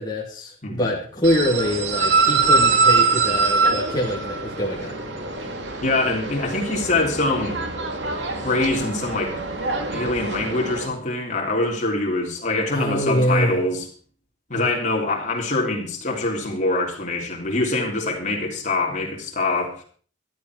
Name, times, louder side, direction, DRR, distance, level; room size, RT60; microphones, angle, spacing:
voice 1, 0.0-5.0 12.7-13.6 14.5-14.7, equal, 20° left, 2.5 m, -24 dB
sound 1, 1.2-10.9, right 4 dB, 70° right, 2.5 m, -23 dB
voice 2, 5.8-7.5 8.4-9.3 9.9-13.8 14.5-19.8, left 2 dB, 40° left, 3.5 m, -24 dB
13.5 x 12.5 x 4.7 m
head